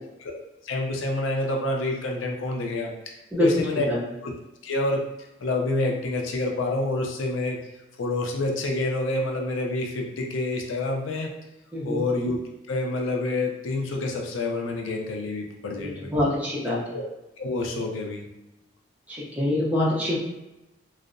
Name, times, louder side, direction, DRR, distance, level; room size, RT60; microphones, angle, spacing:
voice 1, 0.6-2.9 3.4-3.9 4.2-4.3 4.6-5.0 5.4-7.6 8.0-11.3 11.8-12.4 12.7-16.1 16.9-17.0 17.4-18.3, left 2 dB, 85° left, 1 dB, 0.4 m, -27 dB
voice 2, 3.3-4.0 11.7-12.0 15.8-16.8 19.1-20.2, left 1 dB, 10° right, -6 dB, 0.5 m, -25 dB
2.6 x 2.0 x 2.4 m, 0.97 s
head